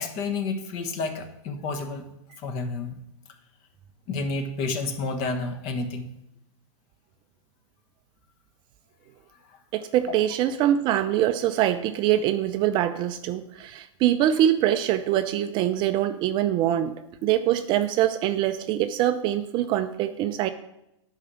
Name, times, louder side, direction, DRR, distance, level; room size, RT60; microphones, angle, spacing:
voice 1, 0.0-3.0 4.1-6.1 9.4-9.6, left 3 dB, 40° left, 7 dB, 1.4 m, -30 dB
voice 2, 9.7-20.5, right 11 dB, 30° right, 10 dB, 0.5 m, -24 dB
9.7 x 4.8 x 6.3 m, 0.85 s
hypercardioid pair, 135°, 16 cm